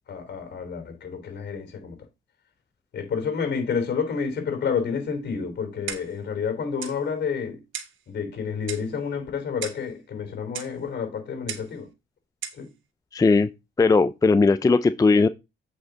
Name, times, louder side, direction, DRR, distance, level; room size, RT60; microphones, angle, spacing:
voice 1, 0.1-2.0 2.9-7.6 8.1-11.9 12.6-12.7, left 6 dB, 55° left, 3.4 m, -29 dB
Clock, 5.9-6.2 6.8-7.0 7.7-8.0 8.7-8.9 9.6-9.9 10.5-10.8 11.5-11.7 12.4-12.6, right 9 dB, 80° right, 1.2 m, -35 dB
voice 2, 13.1-13.5 13.8-15.3, left 4 dB, 20° left, 0.4 m, -18 dB
8.2 x 5.3 x 3.9 m
cardioid pair, 90°, 20 cm